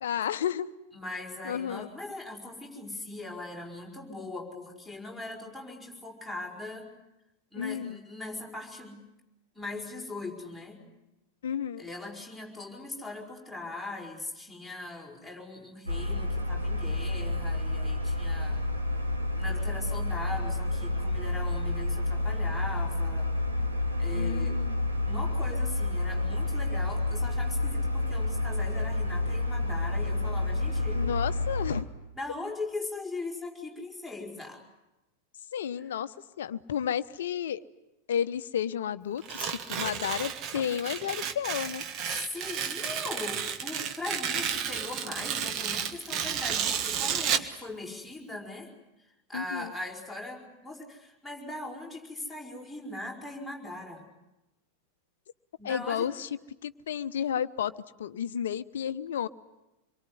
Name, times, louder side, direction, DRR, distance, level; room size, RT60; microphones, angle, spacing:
voice 1, 0.0-0.7 1.4-1.9 7.6-8.0 11.4-11.9 24.1-24.8 30.9-31.9 35.5-37.6 38.1-41.8 49.3-49.7 55.6-56.3 56.6-57.7 58.0-59.3, left 9 dB, 60° left, 14 dB, 0.9 m, -32 dB
voice 2, 0.9-6.9 7.5-9.1 9.6-10.9 11.8-18.6 19.4-23.3 24.0-24.6 25.0-31.1 32.2-34.6 35.8-35.9 42.1-48.7 49.0-54.0 55.6-56.1, left 2 dB, ahead, 2 dB, 5.3 m, -40 dB
sound 1, 15.9-31.8, left 2 dB, 80° right, 2.8 m, -29 dB
Tearing, 39.2-47.5, right 8 dB, 35° right, 1.6 m, -32 dB
26.5 x 23.0 x 9.8 m, 0.98 s
figure-of-eight pair, 90°, 0 cm